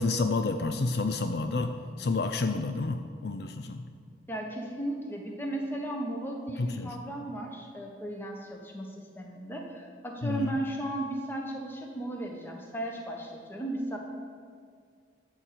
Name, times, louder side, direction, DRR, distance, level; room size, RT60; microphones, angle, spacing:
voice 1, 0.0-3.9 6.6-7.0 10.2-10.5, left 3 dB, 60° left, 7 dB, 0.5 m, -30 dB
voice 2, 4.3-14.0, right 1 dB, 10° left, 0 dB, 1.2 m, -35 dB
12.5 x 4.4 x 7.7 m, 2.1 s
head